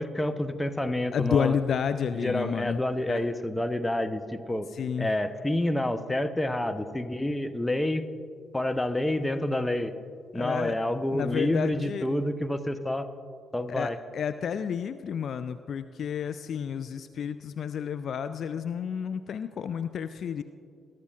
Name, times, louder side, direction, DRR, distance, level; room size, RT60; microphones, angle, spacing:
voice 1, 0.0-1.6 2.1-4.7 5.0-8.1 8.5-9.9 10.3-13.1 13.5-14.0, left 1 dB, 10° left, 9 dB, 0.8 m, -28 dB
voice 2, 1.1-2.8 3.1-3.2 4.7-5.1 10.3-10.8 11.1-12.1 13.7-20.4, left 7 dB, 55° left, 11 dB, 0.3 m, -30 dB
21.5 x 12.5 x 2.4 m, 2.3 s
figure-of-eight pair, 40°, 0 cm